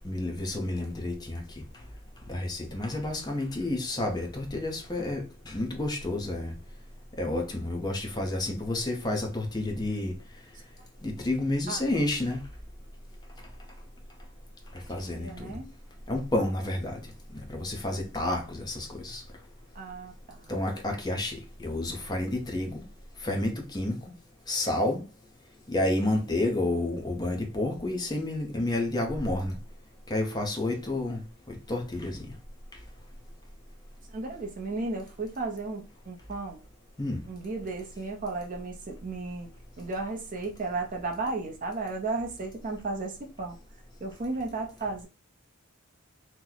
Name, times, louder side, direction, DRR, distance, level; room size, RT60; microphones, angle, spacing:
voice 1, 0.0-1.4 2.3-6.5 7.2-10.1 11.0-12.4 14.9-15.6 16.1-17.0 17.3-19.2 20.5-22.8 23.2-24.0 24.5-25.0 25.7-29.6 30.1-31.2 31.5-32.3 37.0-37.2, left 1 dB, 20° left, 0.6 m, -30 dB
voice 2, 15.1-15.7 19.8-20.4 34.1-36.6 37.3-39.5 39.8-43.6 44.0-45.1, right 3 dB, 40° right, 0.5 m, -34 dB
2.9 x 2.1 x 3.8 m
head